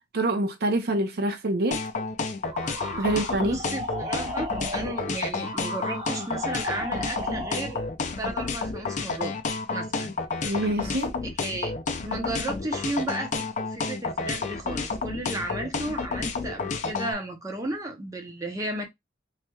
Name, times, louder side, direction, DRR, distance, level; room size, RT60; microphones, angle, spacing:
voice 1, 0.1-1.8 3.0-3.6 10.4-11.1, right 1 dB, 60° right, 0.6 m, -26 dB
sound 1, 1.7-17.1, left 4 dB, 40° left, 0.4 m, -30 dB
sound 2, 2.5-7.9, equal, 35° right, 1.1 m, -36 dB
voice 2, 3.4-7.8 8.2-9.4 9.7-10.2 10.4-10.6 11.4-11.7 12.0-13.3 13.7-18.8, right 1 dB, 20° right, 0.7 m, -34 dB
3.2 x 2.9 x 2.2 m
head